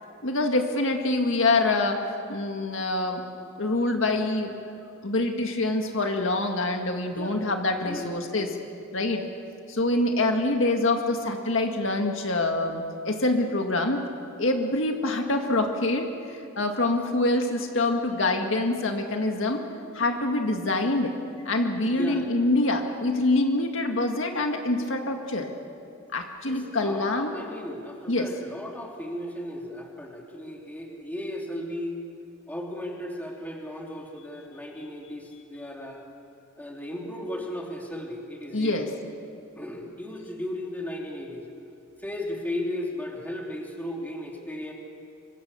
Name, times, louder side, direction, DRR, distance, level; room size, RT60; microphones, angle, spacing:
voice 1, 0.2-2.0 2.3-3.2 3.6-4.5 5.0-8.5 8.9-9.3 9.7-14.0 14.4-19.6 19.9-21.2 21.4-25.5 26.1-27.3 28.1-28.3 38.5-38.9, left 2 dB, 65° left, 3 dB, 1.9 m, -25 dB
voice 2, 7.2-7.5 7.8-8.1 21.8-22.3 26.4-31.9 32.5-36.0 36.6-38.8 39.6-41.5 42.0-44.7, left 1 dB, 10° left, -1 dB, 3.1 m, -35 dB
24.5 x 24.5 x 7.0 m, 2.5 s
head